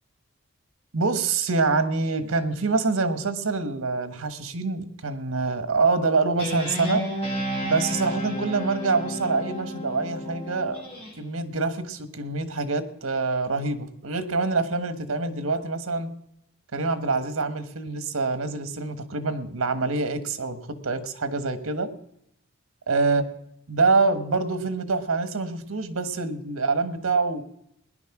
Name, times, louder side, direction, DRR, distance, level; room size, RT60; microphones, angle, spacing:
voice 1, 0.9-7.1 7.6-10.8 11.2-16.1 16.7-21.9 22.9-23.2 23.7-27.4, right 3 dB, 85° right, 11 dB, 1.3 m, -25 dB
Guitar, 6.4-11.1, equal, 30° left, 7.9 m, -31 dB
19.0 x 10.5 x 6.0 m, 0.77 s
head